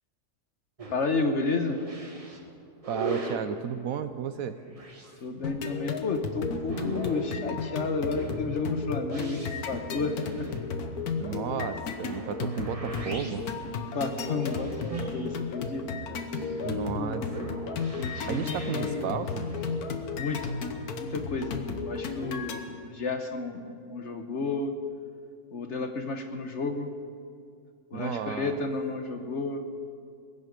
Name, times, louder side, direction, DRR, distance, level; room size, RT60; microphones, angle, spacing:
sound 1, 0.8-19.8, right 3 dB, 25° right, 1.2 m, -41 dB
voice 1, 0.9-1.8 5.2-10.5 13.7-16.2 16.9-17.2 18.0-19.1 20.1-20.5 21.0-24.7 25.5-26.9 27.9-29.6, left 3 dB, 50° left, 6 dB, 1.1 m, -32 dB
voice 2, 2.9-4.6 11.2-13.5 16.6-17.2 18.3-19.5 27.9-28.6, right 8 dB, 70° right, 11 dB, 1.0 m, -33 dB
sound 2, 5.4-22.6, left 4 dB, 70° left, 1.4 m, -34 dB
21.5 x 9.7 x 5.2 m, 2.3 s
omnidirectional pair, 1.7 m